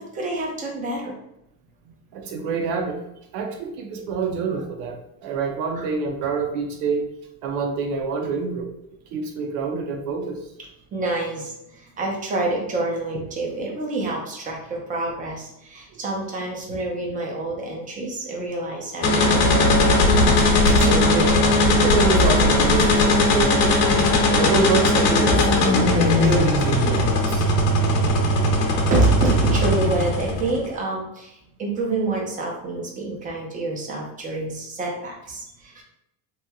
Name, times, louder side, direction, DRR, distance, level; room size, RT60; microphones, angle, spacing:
voice 1, 0.1-1.1 5.7-5.9 10.9-19.8 20.4-20.9 25.3-25.5 28.7-35.8, right 2 dB, 20° right, -1 dB, 0.6 m, -27 dB
voice 2, 2.1-3.0 3.3-7.0 7.4-8.7 9.1-10.4 15.9-16.0 20.9-21.3 21.7-23.8 24.3-25.4 25.7-27.4, right 5 dB, 75° right, 3 dB, 0.7 m, -26 dB
sound 1, 19.0-30.7, left 1 dB, 75° left, 0.9 m, -18 dB
3.1 x 2.7 x 2.3 m, 0.82 s
supercardioid pair, 140°, 45 cm